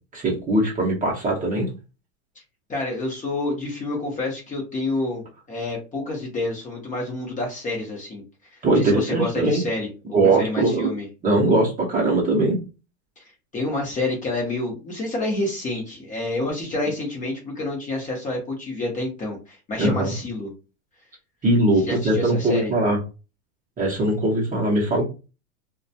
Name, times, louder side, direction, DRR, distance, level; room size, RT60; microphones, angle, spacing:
voice 1, 0.1-1.7 8.6-9.6 10.1-10.9 11.2-12.6 19.8-20.1 21.4-23.0 23.8-25.0, right 2 dB, 20° right, -3 dB, 0.7 m, -21 dB
voice 2, 2.7-8.2 8.8-9.9 10.4-11.1 13.2-13.3 13.5-20.5 21.8-22.7, left 2 dB, 20° left, -1 dB, 0.6 m, -28 dB
2.2 x 2.2 x 2.7 m, 0.31 s
hypercardioid pair, 115°, 42 cm